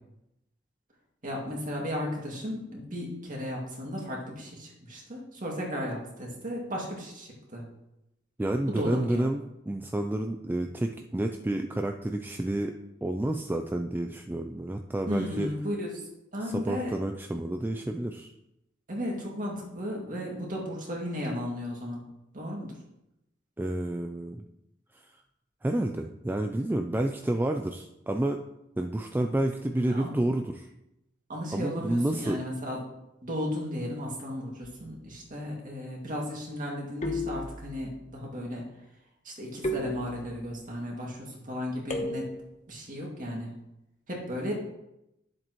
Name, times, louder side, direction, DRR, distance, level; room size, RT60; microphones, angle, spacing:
voice 1, 1.2-7.7 8.7-9.3 15.1-16.9 18.9-22.0 22.3-22.7 29.9-30.1 31.3-32.8 33.2-38.6 39.2-42.3 42.7-43.6 44.1-44.5, equal, 45° right, -2 dB, 2.3 m, -35 dB
voice 2, 8.4-12.7 13.0-15.5 16.4-18.3 23.6-24.4 24.9-25.1 25.6-28.4 28.8-30.7 31.5-32.4, right 1 dB, 10° right, 4 dB, 0.3 m, -30 dB
sound 1, 34.6-35.2 37.0-38.0 39.6-40.6 41.9-42.6, left 1 dB, 40° left, 1.0 m, -35 dB
10.5 x 7.4 x 3.1 m, 0.87 s
head